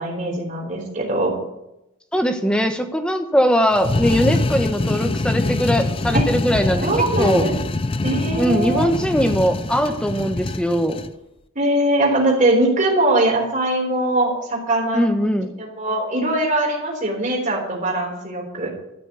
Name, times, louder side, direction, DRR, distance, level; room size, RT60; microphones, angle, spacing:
voice 1, 0.0-1.4 6.1-6.2 6.8-7.6 8.0-8.9 11.6-15.0 15.6-18.7, right 1 dB, 35° right, 0 dB, 3.6 m, -21 dB
voice 2, 2.1-6.9 7.2-7.5 8.4-11.0 14.9-15.5, equal, 5° left, 7 dB, 1.0 m, -20 dB
sound 1, 3.7-11.1, left 2 dB, 25° left, 0.4 m, -24 dB
13.5 x 6.1 x 9.3 m, 0.88 s
head